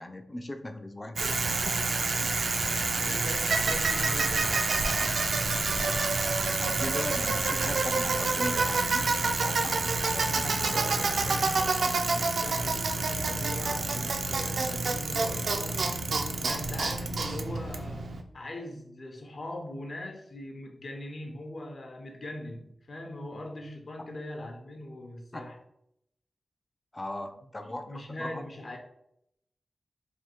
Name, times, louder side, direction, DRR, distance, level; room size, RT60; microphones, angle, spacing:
voice 1, 0.0-1.3 1.6-1.7 6.4-11.4 25.3-25.4 26.9-28.4, left 1 dB, 20° left, 7 dB, 0.4 m, -39 dB
Bicycle, 1.2-18.2, right 3 dB, 75° right, 0.4 m, -28 dB
voice 2, 3.0-4.8 10.5-15.8 16.4-25.6 27.8-28.8, left 1 dB, 50° left, 3 dB, 0.8 m, -41 dB
3.5 x 2.7 x 4.3 m, 0.77 s
wide cardioid pair, 140°, 0 cm